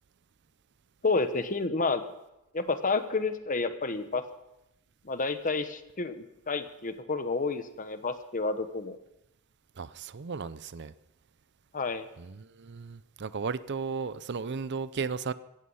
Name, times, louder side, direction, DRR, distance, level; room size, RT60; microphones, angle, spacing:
voice 1, 1.0-2.0 2.5-4.2 5.0-9.0 11.7-12.1, left 3 dB, 40° left, 10 dB, 1.2 m, -30 dB
voice 2, 9.8-10.9 12.2-15.3, right 5 dB, 55° right, 16 dB, 0.6 m, -35 dB
17.0 x 15.0 x 5.6 m, 0.91 s
head